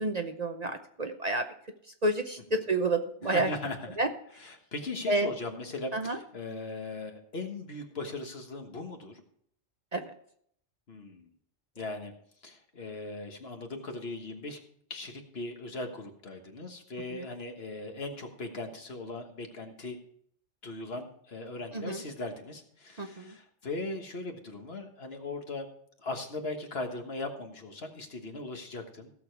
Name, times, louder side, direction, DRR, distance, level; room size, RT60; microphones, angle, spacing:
voice 1, 0.0-1.5 2.0-3.5 4.0-4.1 5.1-5.3 5.9-6.2 9.9-10.0 17.1-17.3 21.7-22.0 23.0-23.4, right 2 dB, 40° right, 6 dB, 0.8 m, -29 dB
voice 2, 3.2-4.0 4.4-9.2 10.9-11.3 11.8-12.1 12.4-14.6 14.9-20.0 20.6-25.7 26.0-29.1, left 2 dB, 60° left, 4 dB, 1.7 m, -39 dB
16.5 x 6.8 x 4.6 m, 0.66 s
omnidirectional pair, 1.2 m